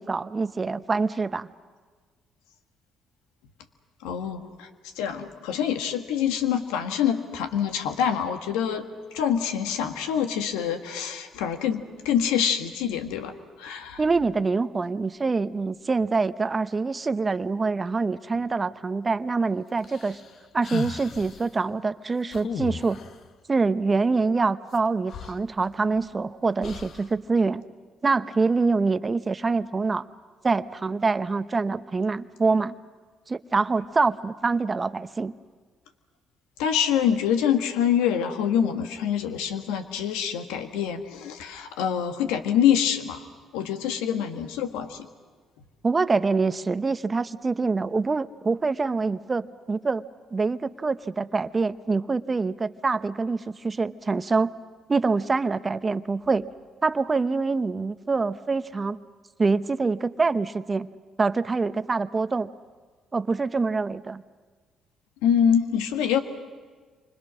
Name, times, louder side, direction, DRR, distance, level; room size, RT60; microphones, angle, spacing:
voice 1, 0.0-1.5 14.0-20.2 20.5-23.0 23.5-27.6 28.0-30.0 30.4-32.7 33.3-35.3 45.8-50.0 50.3-54.5 54.9-56.5 56.8-59.0 59.4-60.9 61.2-62.5 63.1-64.2, right 4 dB, 35° right, 13 dB, 0.9 m, -25 dB
voice 2, 4.0-4.7 5.0-8.9 9.1-13.3 13.6-14.0 36.6-43.3 43.5-45.1 65.2-66.2, left 8 dB, 85° left, 7 dB, 1.5 m, -25 dB
sound 1, 19.8-21.5 22.3-23.2 24.7-24.8 25.1-26.1 26.6-27.1, left 6 dB, 65° left, 1.2 m, -36 dB
28.5 x 25.0 x 6.3 m, 1.5 s
supercardioid pair, 60°, 0 cm